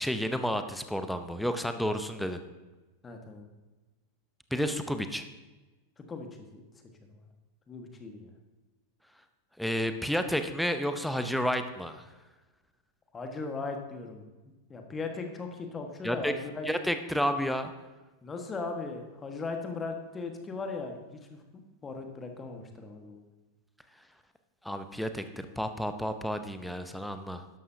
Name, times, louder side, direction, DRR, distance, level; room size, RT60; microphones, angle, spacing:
voice 1, 0.0-2.4 4.5-5.2 9.6-12.1 16.0-16.3 16.6-17.7 24.6-27.4, equal, ahead, 8 dB, 0.7 m, -31 dB
voice 2, 3.0-3.4 6.1-6.8 7.1-7.3 7.7-8.3 13.1-14.2 14.7-16.7 18.2-21.4 21.8-23.2, left 4 dB, 20° left, 4 dB, 1.5 m, -38 dB
12.5 x 11.0 x 2.8 m, 1.2 s
figure-of-eight pair, 90°, 0 cm